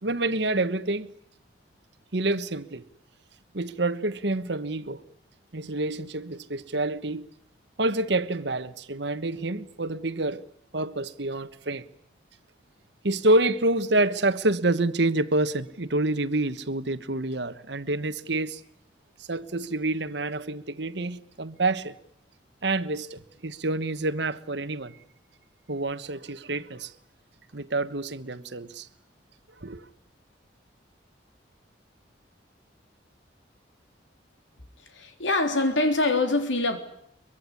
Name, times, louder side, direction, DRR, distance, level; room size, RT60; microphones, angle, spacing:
voice 1, 0.0-1.1 2.1-2.8 3.5-5.0 5.5-7.2 7.8-10.4 10.7-11.8 13.0-18.6 19.2-21.9 22.6-25.0 25.7-26.9 27.5-28.9 29.6-29.9, right 2 dB, 65° right, 1.3 m, -27 dB
voice 2, 34.8-36.8, left 2 dB, 80° left, 3.6 m, -24 dB
23.5 x 23.5 x 9.9 m
head